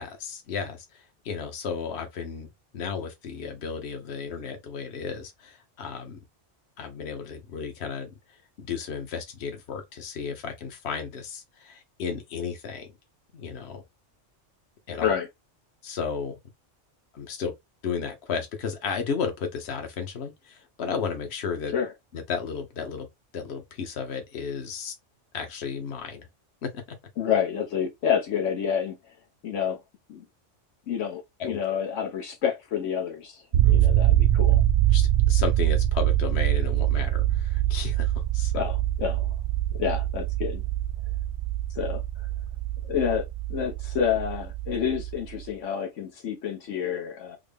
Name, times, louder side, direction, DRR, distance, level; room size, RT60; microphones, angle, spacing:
voice 1, 0.0-2.5 2.7-6.2 6.8-8.1 8.6-12.9 13.3-13.8 14.9-15.1 15.8-16.4 17.1-17.5 17.8-21.7 22.1-23.1 23.3-24.9 25.3-26.3 26.6-27.0 31.4-31.6 33.6-33.9 34.9-38.7, left 6 dB, 60° left, 1.1 m, -33 dB
voice 2, 15.0-15.3 21.7-21.9 27.2-29.0 29.4-29.8 30.1-30.2 30.9-34.6 38.5-39.3 39.8-40.6 41.7-42.0 42.9-43.2 43.5-47.4, left 8 dB, 80° left, 1.1 m, -28 dB
sound 1, 33.5-45.5, right 13 dB, 65° right, 0.9 m, -24 dB
3.7 x 2.1 x 3.3 m
omnidirectional pair, 1.3 m